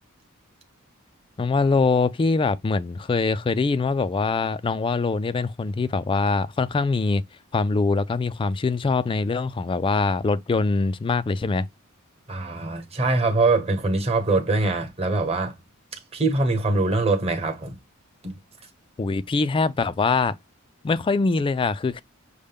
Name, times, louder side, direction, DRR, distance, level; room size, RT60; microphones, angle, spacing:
voice 1, 1.4-7.2 7.5-11.7 19.0-20.4 20.8-22.0, left 4 dB, 25° left, 0.3 m, -23 dB
voice 2, 12.3-15.5 16.1-17.8 18.2-18.4, right 3 dB, 30° right, 1.1 m, -23 dB
6.5 x 2.2 x 3.4 m
head